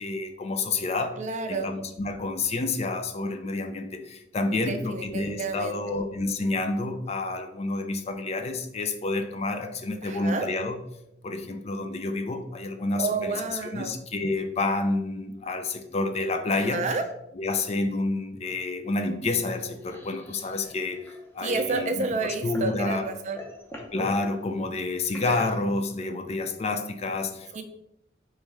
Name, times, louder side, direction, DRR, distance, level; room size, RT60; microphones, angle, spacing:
voice 1, 0.0-1.1 1.5-10.8 11.2-16.8 17.4-23.0 23.9-27.6, left 3 dB, 35° left, 7 dB, 0.4 m, -29 dB
voice 2, 1.2-1.7 4.7-6.0 10.0-10.5 13.0-13.9 16.5-17.0 21.4-23.4 27.5-27.6, right 3 dB, 40° right, 6 dB, 0.4 m, -30 dB
sound 1, 19.6-22.8 23.1-24.2 25.0-25.9, equal, 10° left, 0.8 m, -42 dB
3.4 x 3.1 x 4.7 m, 0.81 s
head